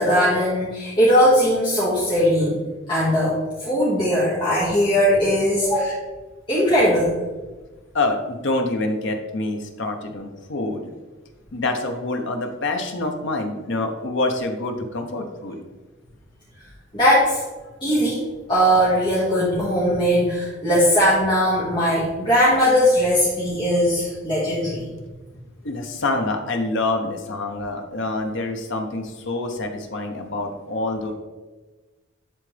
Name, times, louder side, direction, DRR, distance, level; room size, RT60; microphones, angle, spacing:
voice 1, 0.0-2.6 2.9-6.0 6.5-7.2 16.9-17.4 17.8-18.2 18.5-24.8, equal, 25° left, -9 dB, 1.7 m, -19 dB
voice 2, 7.9-10.9 11.5-15.6 25.6-31.1, left 2 dB, 65° left, 4 dB, 1.0 m, -26 dB
11.5 x 4.1 x 3.4 m, 1.2 s
head